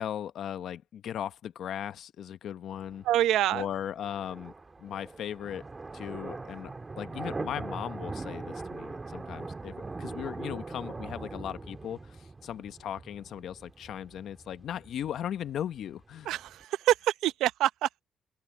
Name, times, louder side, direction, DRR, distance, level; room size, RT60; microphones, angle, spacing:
voice 1, 0.0-3.0 3.5-4.5 4.8-5.6 5.9-6.7 7.0-16.3, left 10 dB, 70° left, 0.9 m, -37 dB
sound 1, 2.7-16.6, right 3 dB, 25° right, 1.8 m, -41 dB
voice 2, 3.0-3.7 16.3-17.9, right 13 dB, 85° right, 0.7 m, -26 dB
cardioid pair, 90°, 0 cm